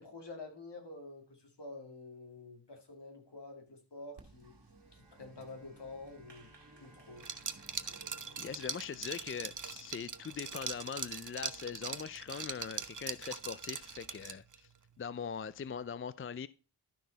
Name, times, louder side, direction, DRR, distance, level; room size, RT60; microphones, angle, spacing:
voice 1, 0.0-4.6 4.9-6.5 6.8-7.2, left 2 dB, 70° left, 2.3 m, -48 dB
Applause, 4.2-14.3, right 3 dB, 70° right, 1.8 m, -61 dB
Bowed string instrument, 4.7-10.2, left 1 dB, 20° right, 3.9 m, -64 dB
Liquid, 7.2-14.6, right 6 dB, 45° right, 0.7 m, -41 dB
voice 2, 8.4-14.7 15.0-16.5, left 6 dB, 30° left, 0.4 m, -41 dB
11.5 x 6.0 x 4.0 m
wide cardioid pair, 55°, 43 cm